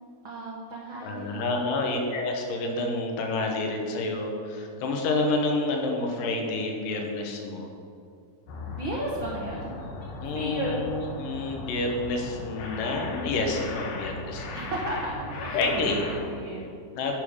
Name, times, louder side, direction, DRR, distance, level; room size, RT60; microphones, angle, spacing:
voice 1, 0.2-1.7 8.6-9.7 10.3-10.8 14.5-16.8 17.1-17.2, right 1 dB, 80° right, -3 dB, 1.1 m, -34 dB
voice 2, 1.0-7.7 10.2-14.6 15.5-16.2 17.0-17.2, left 2 dB, 80° left, 2 dB, 2.7 m, -29 dB
sound 1, 8.5-16.3, left 3 dB, 65° left, 2.1 m, -38 dB
11.0 x 5.1 x 4.9 m, 2.3 s
omnidirectional pair, 3.8 m